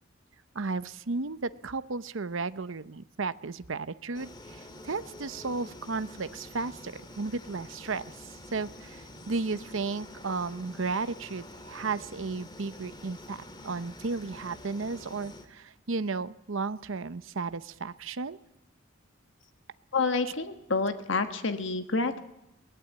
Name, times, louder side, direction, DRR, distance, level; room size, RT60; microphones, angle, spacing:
voice 1, 0.5-18.4 20.2-20.3, right 4 dB, 75° right, 14 dB, 0.8 m, -34 dB
sound 1, 4.1-15.5, left 1 dB, 20° left, 1.9 m, -47 dB
voice 2, 19.9-22.2, left 3 dB, 65° left, 8 dB, 1.4 m, -28 dB
22.0 x 18.5 x 8.6 m, 0.88 s
head